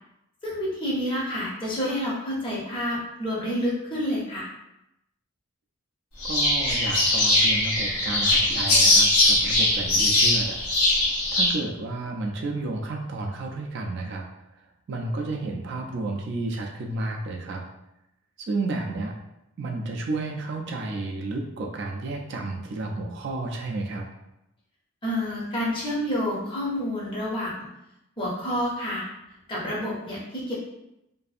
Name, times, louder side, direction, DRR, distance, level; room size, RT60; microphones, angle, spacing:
voice 1, 0.4-4.5 25.0-27.7 28.2-29.1 29.5-30.5, equal, 25° left, -5 dB, 0.6 m, -29 dB
sound 1, 6.2-11.5, left 2 dB, 90° left, 0.7 m, -21 dB
voice 2, 6.2-10.8 11.3-14.2 14.9-17.6 18.4-19.1 19.6-24.1, right 2 dB, 55° right, 1 dB, 0.3 m, -31 dB
2.6 x 2.4 x 2.4 m, 0.87 s
head